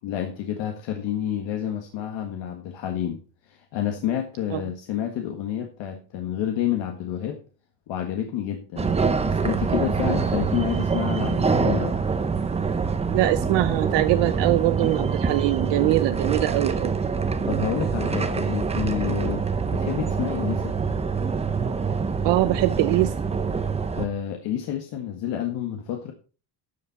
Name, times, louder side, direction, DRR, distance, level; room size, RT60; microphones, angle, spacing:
voice 1, 0.0-7.4 7.9-8.9 9.2-12.0 17.4-19.4 19.7-20.7 23.9-26.1, left 10 dB, 75° left, 3 dB, 1.7 m, -29 dB
sound 1, 8.8-24.1, right 5 dB, 15° right, 0.7 m, -25 dB
voice 2, 13.1-16.9 22.2-23.1, right 17 dB, 70° right, 12 dB, 0.7 m, -22 dB
12.5 x 7.2 x 4.2 m, 0.37 s
cardioid pair, 165°, 45 cm